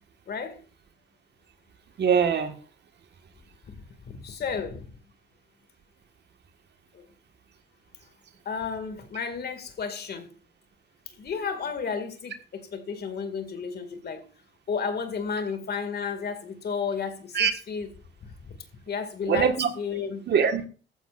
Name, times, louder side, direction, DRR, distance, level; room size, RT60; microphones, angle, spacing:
voice 1, 0.3-0.6 3.7-3.8 4.0-4.9 6.9-7.1 8.5-10.3 11.1-14.3 14.7-17.9 18.4-18.6 18.9-20.2, left 6 dB, 55° left, 2.3 m, -32 dB
voice 2, 2.0-2.5 17.3-17.5 19.3-19.7 20.3-20.7, right 7 dB, 60° right, 1.7 m, -22 dB
15.0 x 12.5 x 2.6 m
cardioid pair, 90°, 20 cm